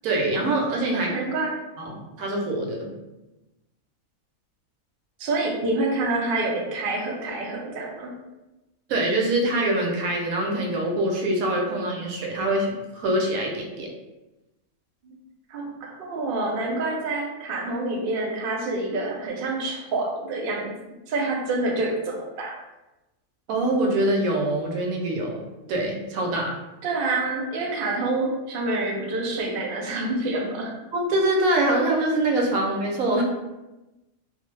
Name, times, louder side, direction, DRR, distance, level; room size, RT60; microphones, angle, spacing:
voice 1, 0.0-1.1 1.8-2.9 8.9-13.9 23.5-25.4 25.7-26.5 30.9-33.2, right 1 dB, 90° right, 0 dB, 1.0 m, -24 dB
voice 2, 0.9-1.6 5.2-8.1 15.0-15.1 15.5-20.7 21.1-22.6 26.8-30.7, right 2 dB, 65° right, 0 dB, 0.5 m, -27 dB
2.6 x 2.0 x 3.1 m, 1.0 s
omnidirectional pair, 1.4 m